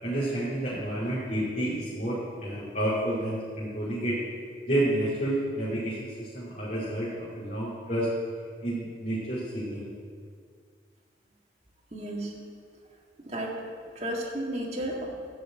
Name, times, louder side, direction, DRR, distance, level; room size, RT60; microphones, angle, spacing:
voice 1, 0.0-4.2 4.6-8.1 8.6-9.8, right 1 dB, 45° left, -9 dB, 2.6 m, -30 dB
voice 2, 11.9-12.3 13.2-13.6 14.0-15.1, right 1 dB, 35° right, -3 dB, 1.8 m, -33 dB
13.0 x 5.4 x 7.7 m, 2.1 s
head